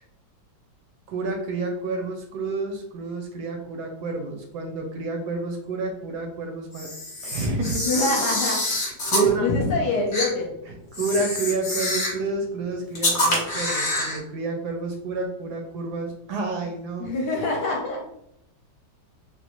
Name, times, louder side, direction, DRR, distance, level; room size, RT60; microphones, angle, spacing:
voice 1, 1.1-6.9 7.2-7.9 9.0-9.5 10.9-17.1, right 3 dB, 70° right, 3 dB, 1.0 m, -29 dB
Camera, 6.7-9.3 10.1-10.3 10.9-12.2 12.9-14.2, left 1 dB, 35° left, 0.8 m, -26 dB
voice 2, 7.8-10.5 17.0-18.1, left 2 dB, 70° left, 0 dB, 1.2 m, -25 dB
3.7 x 2.1 x 2.9 m, 0.74 s
omnidirectional pair, 2.1 m